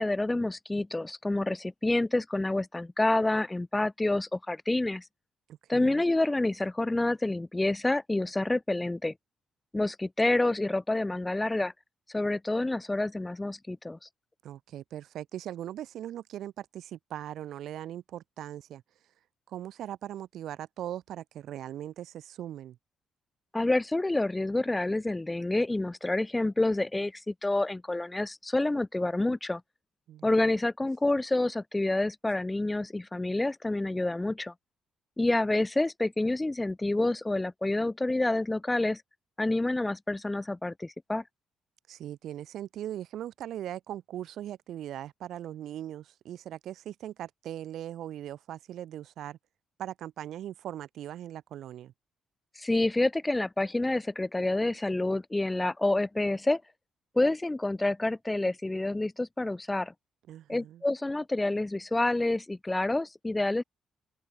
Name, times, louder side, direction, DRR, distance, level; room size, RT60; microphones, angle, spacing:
voice 1, 0.0-5.0 5.7-9.1 9.7-11.7 12.1-14.0 23.5-29.6 30.2-34.5 35.2-39.0 39.4-41.2 52.6-56.6 57.1-59.9 60.5-63.6, left 2 dB, 15° left, 2.9 m, -28 dB
voice 2, 5.5-6.1 14.4-18.8 19.5-22.8 30.1-30.3 41.9-49.4 49.8-51.9 60.3-60.8, right 11 dB, 75° right, 5.4 m, -40 dB
open air
cardioid pair, 90°, 0 cm